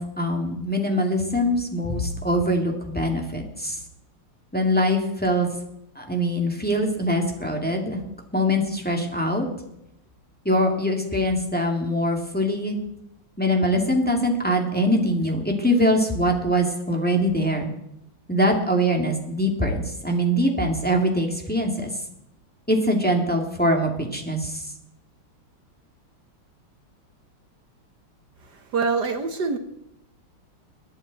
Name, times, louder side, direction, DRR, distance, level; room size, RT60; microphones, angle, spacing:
voice 1, 0.0-3.8 4.5-5.5 6.0-8.0 8.3-9.5 10.4-12.8 13.4-17.7 18.3-21.9 22.7-24.6, equal, 5° left, 1 dB, 2.0 m, -23 dB
voice 2, 28.4-29.6, right 4 dB, 55° right, 7 dB, 1.5 m, -25 dB
22.5 x 9.7 x 4.1 m, 0.81 s
omnidirectional pair, 2.4 m